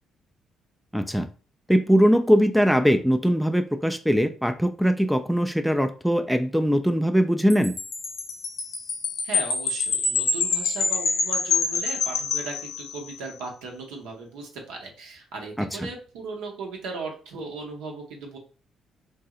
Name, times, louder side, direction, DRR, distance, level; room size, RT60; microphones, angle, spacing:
voice 1, 0.9-1.3 1.7-7.7 15.6-15.7, equal, ahead, 8 dB, 0.3 m, -21 dB
Wind chime, 7.5-13.2, left 4 dB, 65° left, 0.5 m, -26 dB
voice 2, 9.2-18.4, right 3 dB, 75° right, 0 dB, 0.7 m, -37 dB
2.6 x 2.0 x 3.5 m, 0.39 s
hypercardioid pair, 45°, 0 cm